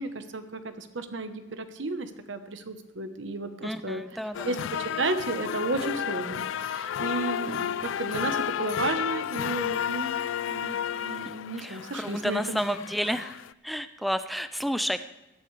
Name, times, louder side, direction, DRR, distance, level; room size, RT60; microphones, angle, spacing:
voice 1, 0.0-4.2 4.4-10.1 10.5-12.6, right 3 dB, 75° right, 8 dB, 1.1 m, -33 dB
voice 2, 3.6-4.5 11.0-11.2 11.6-13.3 13.6-15.0, equal, ahead, 11 dB, 0.3 m, -31 dB
sound 1, 4.3-13.5, left 9 dB, 90° left, 0.3 m, -32 dB
17.5 x 12.5 x 3.3 m, 0.96 s
head